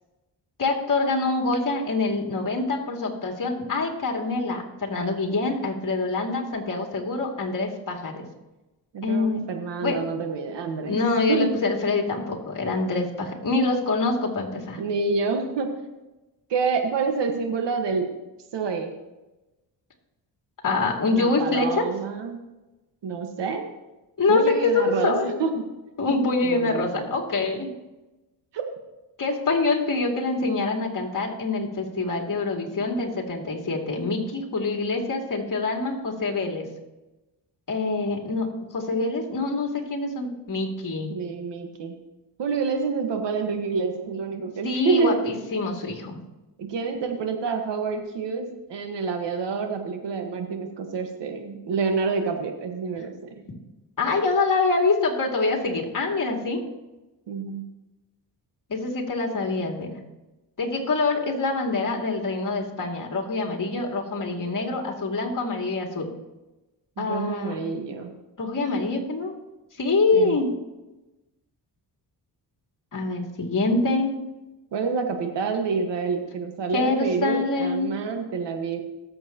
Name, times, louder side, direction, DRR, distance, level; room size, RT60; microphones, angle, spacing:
voice 1, 0.6-8.3 9.0-9.4 9.8-10.0 10.9-14.8 20.6-21.8 24.2-25.4 26.0-27.7 29.2-36.7 37.7-41.2 44.6-46.2 54.0-56.6 58.7-60.0 60.6-66.1 67.0-67.6 68.4-69.3 69.8-70.5 72.9-74.2 76.7-77.9, left 3 dB, 50° left, 0 dB, 2.6 m, -25 dB
voice 2, 8.9-10.9 11.3-11.5 14.8-15.7 16.5-18.1 18.5-18.9 21.1-22.4 23.0-23.7 24.3-25.5 26.4-27.1 28.5-28.7 40.6-40.7 41.1-42.0 42.4-45.2 46.6-53.4 57.3-57.6 67.0-68.1 70.1-70.4 74.7-78.8, right 5 dB, 90° right, 4 dB, 1.6 m, -28 dB
19.0 x 7.7 x 3.0 m, 1.0 s
cardioid pair, 80°, 41 cm